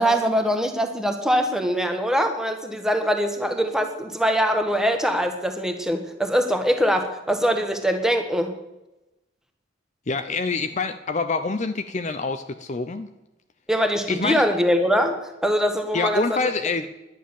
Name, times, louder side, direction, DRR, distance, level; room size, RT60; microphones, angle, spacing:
voice 1, 0.0-8.5 13.7-16.4, equal, 5° right, 5 dB, 1.3 m, -23 dB
voice 2, 10.1-13.1 14.1-14.4 15.9-16.9, left 4 dB, 35° left, 9 dB, 0.6 m, -26 dB
11.0 x 9.5 x 7.0 m, 0.97 s
head